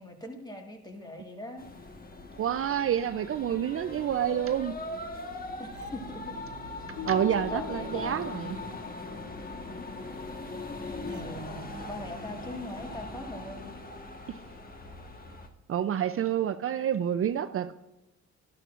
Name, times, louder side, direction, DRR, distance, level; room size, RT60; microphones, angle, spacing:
voice 1, 0.0-1.7 5.6-6.4 7.5-8.2 11.1-13.8, left 1 dB, 15° left, 3 dB, 1.7 m, -41 dB
sound 1, 1.6-15.5, left 2 dB, 30° left, 1.3 m, -40 dB
voice 2, 2.4-4.7 7.1-8.6 14.3-14.4 15.7-17.7, right 9 dB, 45° right, 11 dB, 0.5 m, -28 dB
sound 2, 5.7-9.0 11.0-14.3, right 5 dB, 85° right, 1.1 m, -48 dB
sound 3, 7.0-10.1, left 18 dB, 55° left, 0.6 m, -44 dB
12.0 x 11.5 x 2.5 m, 0.95 s
cardioid pair, 90°, 30 cm